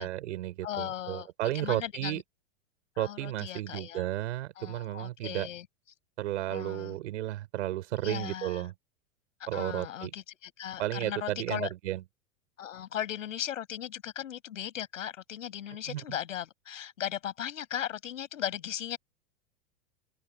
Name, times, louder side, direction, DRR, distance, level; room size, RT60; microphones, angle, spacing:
voice 1, 0.0-2.2 3.0-5.5 6.2-8.7 9.5-10.1 10.8-12.0 15.9-16.0, right 15 dB, 70° right, 7.0 m, -33 dB
voice 2, 0.6-1.3 1.5-2.2 3.0-4.1 4.6-5.7 6.5-7.0 8.0-8.7 9.5-11.7 12.6-19.0, left 10 dB, 80° left, 7.3 m, -37 dB
open air
hypercardioid pair, 110°, 38 cm